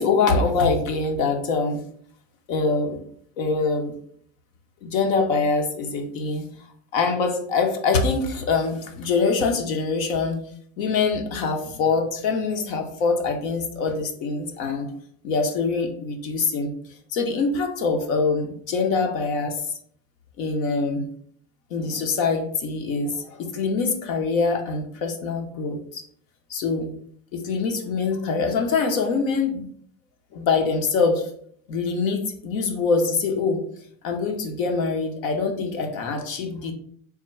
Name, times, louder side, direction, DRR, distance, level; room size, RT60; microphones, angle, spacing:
voice 1, 0.0-1.8 2.5-3.0 3.4-3.9 4.8-6.4 6.9-10.4 10.8-14.9 15.2-16.7 17.1-19.6 20.4-21.0 21.7-26.0 26.5-26.9 27.3-29.7 30.3-31.3 31.7-33.6 34.0-36.7, left 4 dB, 70° left, 4 dB, 0.9 m, -24 dB
3.6 x 2.2 x 4.3 m, 0.62 s
supercardioid pair, 135°, 44 cm